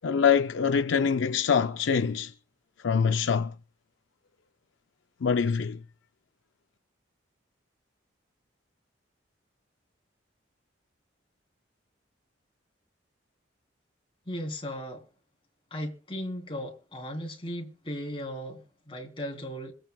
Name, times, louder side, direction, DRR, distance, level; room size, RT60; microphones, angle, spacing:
voice 1, 0.0-2.3 2.8-3.5 5.2-5.8, left 6 dB, 70° left, 0.5 m, -24 dB
voice 2, 14.2-15.0 15.7-19.7, equal, 25° left, 3.4 m, -36 dB
26.0 x 9.1 x 2.3 m
head